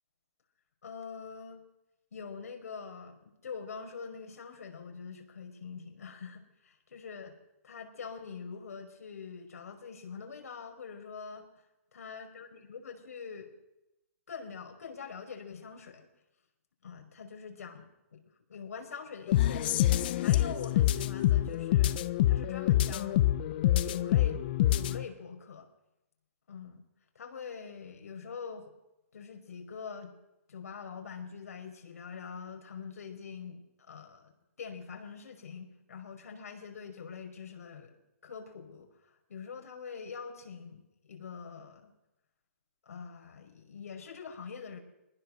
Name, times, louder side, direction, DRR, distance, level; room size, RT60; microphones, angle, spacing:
voice 1, 0.8-1.6 2.1-7.4 7.6-11.6 11.9-13.5 14.3-16.1 16.8-18.2 18.5-19.8 20.1-23.3 23.8-25.7 26.5-26.8 27.2-28.7 29.1-30.1 30.5-34.3 34.6-38.9 39.3-41.9 42.9-44.8, left 6 dB, 85° left, 4 dB, 5.3 m, -44 dB
sound 1, 19.3-25.0, left 13 dB, 40° left, 0.9 m, -26 dB
22.5 x 19.5 x 6.6 m, 0.94 s
hypercardioid pair, 160°, 8 cm